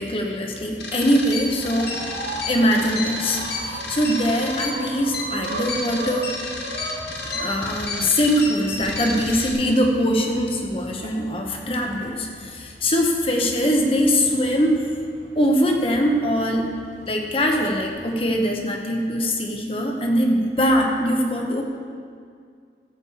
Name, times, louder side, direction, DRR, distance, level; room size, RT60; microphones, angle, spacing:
voice 1, 0.0-2.1 2.4-6.4 7.2-14.8 15.3-16.7 17.1-21.6, equal, 30° left, 1 dB, 1.1 m, -22 dB
sound 1, 0.8-9.5, left 3 dB, 70° left, 1.6 m, -31 dB
sound 2, 1.4-18.1, right 1 dB, 70° right, 2.8 m, -39 dB
14.0 x 5.3 x 7.0 m, 2.2 s
head